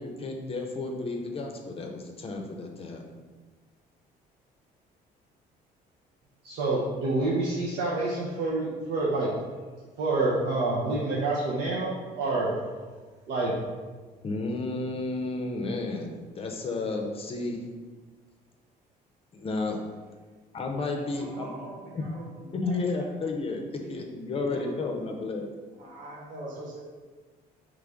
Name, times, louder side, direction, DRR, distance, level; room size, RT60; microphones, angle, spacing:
voice 1, 0.0-3.0 14.2-17.6 19.3-19.8 20.5-21.5 21.9-22.1 22.5-23.6 23.9-25.5, left 3 dB, 35° left, 2 dB, 0.6 m, -32 dB
voice 2, 6.4-9.3 10.0-12.6 13.3-13.5, right 2 dB, 80° right, -6 dB, 0.8 m, -27 dB
voice 3, 20.9-22.3 22.6-22.7 23.8-23.9 24.3-25.1 25.8-26.8, right 2 dB, 50° right, -3 dB, 1.2 m, -42 dB
3.7 x 3.2 x 3.5 m, 1.4 s
cardioid pair, 110°, 17 cm